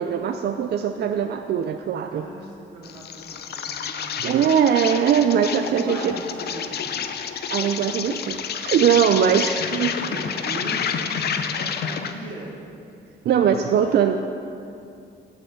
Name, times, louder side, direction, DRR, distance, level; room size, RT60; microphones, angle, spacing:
voice 1, 0.0-2.3 4.2-6.2 7.5-9.9 13.2-14.2, right 8 dB, 55° right, 7 dB, 0.4 m, -21 dB
voice 2, 2.1-4.3 5.6-7.0 9.7-12.5 13.6-14.2, right 1 dB, 85° right, -4 dB, 2.3 m, -38 dB
Insect, 2.8-12.2, left 7 dB, 55° left, 0.6 m, -29 dB
7.0 x 6.5 x 7.8 m, 2.6 s
cardioid pair, 90°, 20 cm